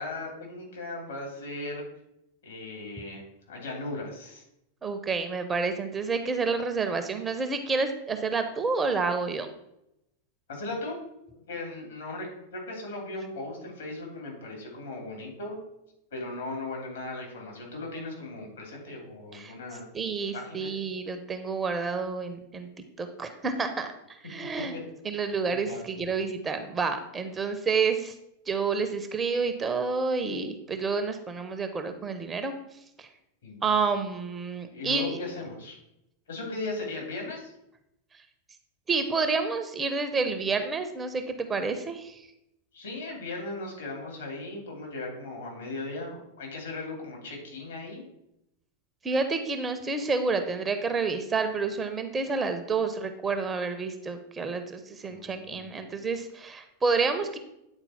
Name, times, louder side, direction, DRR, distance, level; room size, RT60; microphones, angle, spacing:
voice 1, 0.0-1.8 2.4-4.4 10.5-11.0 11.3-15.6 16.1-19.8 20.3-20.7 24.7-24.8 25.5-25.8 33.4-33.8 34.7-35.8 36.3-37.5 42.7-48.1 55.1-55.9, left 2 dB, 65° left, 0 dB, 2.8 m, -37 dB
voice 2, 4.8-9.5 19.3-19.5 19.9-22.7 23.0-24.7 25.0-28.1 28.5-32.5 33.0-33.1 33.6-35.2 38.9-42.3 49.0-57.4, right 4 dB, 15° right, 7 dB, 0.7 m, -29 dB
8.9 x 4.3 x 4.2 m, 0.82 s
figure-of-eight pair, 90°, 0 cm